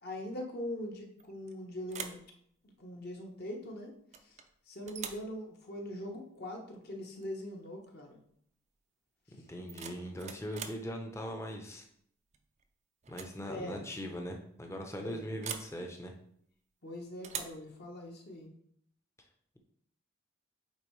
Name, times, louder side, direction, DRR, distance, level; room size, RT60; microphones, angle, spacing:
voice 1, 0.0-2.2 2.8-3.9 4.3-4.4 4.7-8.2 13.4-13.9 15.0-15.3 16.8-18.5, left 1 dB, 45° left, 1 dB, 0.9 m, -42 dB
sound 1, 1.2-1.5 1.9-2.3 4.1-4.5 4.9-5.3 7.1-7.3 7.7-8.0 9.5-10.9 12.3-12.6 13.0-13.4 13.6-13.7 15.4-15.8 17.2-17.6, right 7 dB, 30° right, 0.4 m, -43 dB
voice 2, 9.5-11.8 13.1-16.1, equal, 15° left, 3 dB, 0.6 m, -40 dB
8.7 x 3.6 x 3.1 m, 0.68 s
head